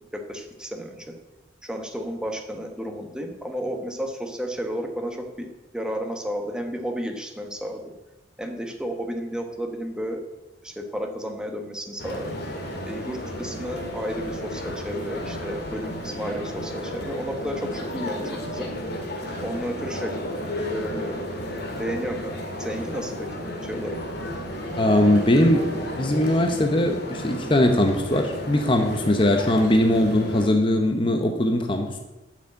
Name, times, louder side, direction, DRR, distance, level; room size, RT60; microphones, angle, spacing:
voice 1, 0.1-1.1 1.6-5.5 5.7-7.9 8.4-10.2 10.6-12.4 12.8-18.7 19.4-20.2 20.7-22.3 22.6-24.0 24.9-25.1, equal, 5° right, 3 dB, 1.1 m, -32 dB
sound 1, 12.0-30.5, equal, 55° left, 1.9 m, -33 dB
voice 2, 24.8-25.6 25.9-32.0, left 1 dB, 25° left, 4 dB, 0.7 m, -20 dB
8.2 x 6.2 x 7.9 m, 1.1 s
head